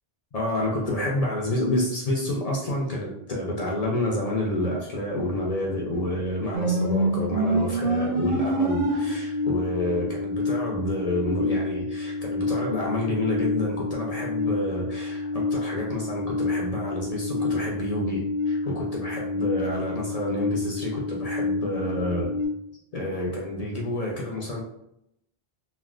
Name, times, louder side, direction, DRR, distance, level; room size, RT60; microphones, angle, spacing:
voice 1, 0.3-22.3 22.9-24.6, left 1 dB, 50° left, -2 dB, 0.5 m, -29 dB
sound 1, 6.5-22.5, left 1 dB, 60° right, 0.9 m, -28 dB
3.2 x 2.1 x 2.4 m, 0.78 s
omnidirectional pair, 1.1 m